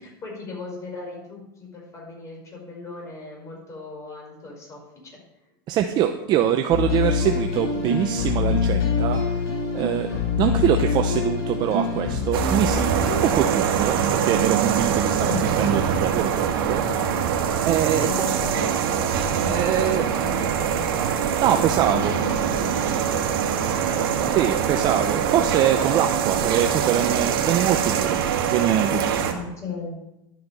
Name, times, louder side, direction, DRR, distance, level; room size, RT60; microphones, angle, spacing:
voice 1, 0.0-4.8 5.1-5.2 15.1-15.5 17.9-19.1 19.4-21.4 21.8-24.4 29.4-30.0, left 4 dB, 25° left, -2 dB, 5.1 m, -37 dB
voice 2, 5.7-9.2 9.7-16.8 17.7-18.4 19.5-20.0 21.4-22.1 24.3-29.4, right 10 dB, 35° right, 5 dB, 0.7 m, -24 dB
sound 1, 6.7-13.2, left 5 dB, 75° left, 5.0 m, -25 dB
sound 2, 12.3-29.3, right 8 dB, 70° right, 1.8 m, -23 dB
11.5 x 7.7 x 5.4 m, 0.87 s
supercardioid pair, 135°, 12 cm